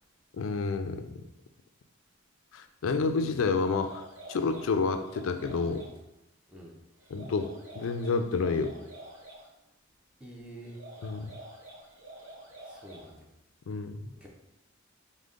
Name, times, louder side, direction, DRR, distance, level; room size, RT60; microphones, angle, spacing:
voice 1, 0.4-1.1 2.5-5.9 7.1-7.5 7.7-8.7 11.0-11.3 13.7-14.1, left 4 dB, 75° left, 9 dB, 0.4 m, -29 dB
sound 1, 3.5-6.0 7.0-9.5 10.6-13.2, right 1 dB, 65° right, 1.3 m, -48 dB
voice 2, 10.2-10.8 12.6-13.3 14.2-14.3, right 1 dB, 5° right, -3 dB, 0.5 m, -47 dB
5.1 x 2.1 x 3.6 m, 0.88 s
head